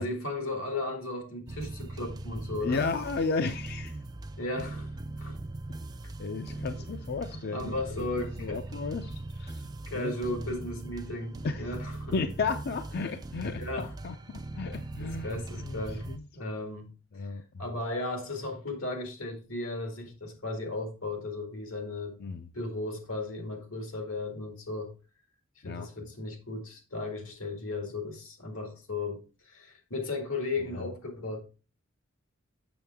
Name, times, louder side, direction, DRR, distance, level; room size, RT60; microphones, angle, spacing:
voice 1, 0.0-2.9 4.4-4.9 5.2-5.4 6.5-6.6 7.3-8.6 9.9-12.2 12.9-13.1 13.5-13.9 15.0-16.1 16.3-17.3 17.6-22.2 22.5-24.9 25.6-31.4, left 2 dB, 85° left, 2.0 m, -35 dB
Underground Ambient, 1.5-16.2, right 2 dB, 20° right, 0.4 m, -40 dB
voice 2, 2.6-3.9 6.2-8.1 8.4-9.6 9.9-10.1 11.4-11.7 12.1-16.2 17.1-17.4 22.2-22.5 25.6-25.9, left 4 dB, 50° left, 0.5 m, -34 dB
7.0 x 6.6 x 3.5 m
head